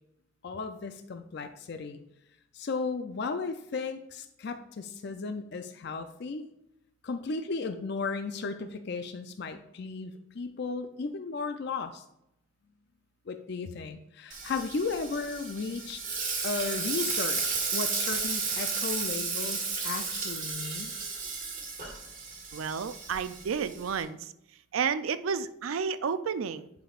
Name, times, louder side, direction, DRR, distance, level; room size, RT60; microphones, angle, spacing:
voice 1, 0.4-2.0 2.5-6.4 7.0-12.0 13.3-16.0 16.4-20.9, left 4 dB, 55° left, 8 dB, 0.5 m, -35 dB
Frying (food), 14.3-24.0, right 5 dB, 40° right, 1.6 m, -33 dB
voice 2, 22.5-24.3 24.7-26.7, right 6 dB, 85° right, 12 dB, 0.4 m, -31 dB
10.0 x 5.1 x 2.4 m, 0.81 s
head